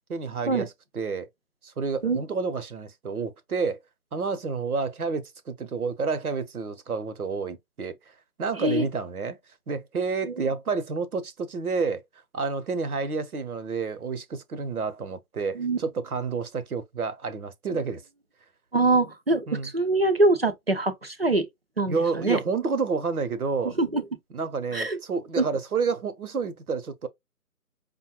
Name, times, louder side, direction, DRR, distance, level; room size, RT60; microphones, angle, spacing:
voice 1, 0.1-1.3 1.6-3.8 4.1-9.4 9.7-12.0 12.3-18.0 19.5-19.7 21.9-23.7 24.3-27.1, right 4 dB, 65° right, 0.8 m, -29 dB
voice 2, 18.7-21.5 21.8-22.4 23.6-24.0 24.7-25.0 25.4-25.5, right 2 dB, 40° right, 0.5 m, -24 dB
5.3 x 2.2 x 2.8 m
figure-of-eight pair, 160°, 47 cm